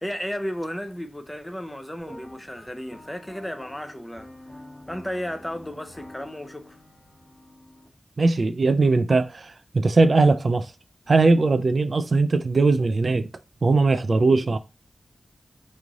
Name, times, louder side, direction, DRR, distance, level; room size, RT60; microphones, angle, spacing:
voice 1, 0.0-4.3 4.9-6.8, equal, 10° left, 0.5 m, -33 dB
sound 1, 2.0-7.9, left 1 dB, 30° left, 1.4 m, -47 dB
voice 2, 8.2-10.7 11.1-13.3 13.6-14.6, right 3 dB, 60° right, 0.3 m, -20 dB
3.1 x 2.4 x 3.8 m
wide cardioid pair, 95°, 0 cm